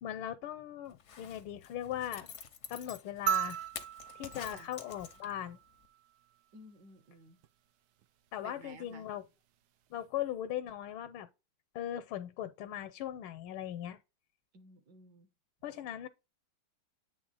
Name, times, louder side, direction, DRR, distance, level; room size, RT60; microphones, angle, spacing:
voice 1, 0.0-2.3 2.7-3.6 4.1-5.6 8.3-9.2 9.9-11.3 11.7-14.0 15.6-16.1, left 11 dB, 85° left, 1.5 m, -39 dB
Zipper (clothing), 0.9-5.5 5.8-5.9, left 7 dB, 60° left, 0.7 m, -48 dB
sound 1, 3.3-5.8 7.4-7.5, right 10 dB, 75° right, 1.0 m, -36 dB
voice 2, 6.5-7.4 8.4-9.0 14.5-15.3, right 2 dB, 60° right, 1.6 m, -54 dB
8.5 x 3.4 x 4.0 m
omnidirectional pair, 2.3 m